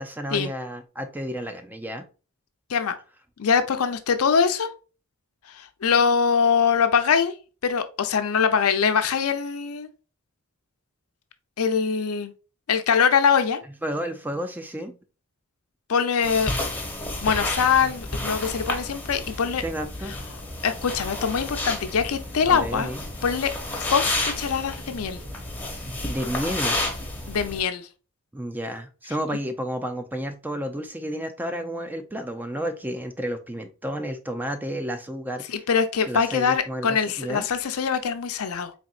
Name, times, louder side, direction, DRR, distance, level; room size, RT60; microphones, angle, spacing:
voice 1, 0.0-2.1 13.8-15.0 19.6-20.2 22.5-23.0 26.1-26.8 28.3-35.6 36.0-37.5, equal, 10° right, 0.4 m, -31 dB
voice 2, 3.4-4.7 5.5-7.3 7.6-9.9 11.6-12.3 12.7-13.6 15.9-16.5 17.2-19.6 20.6-22.9 23.2-23.5 23.8-25.2 27.3-27.9 35.5-38.7, left 6 dB, 75° left, 0.5 m, -23 dB
sound 1, 16.2-27.6, left 2 dB, 10° left, 0.8 m, -31 dB
4.2 x 3.5 x 2.4 m
head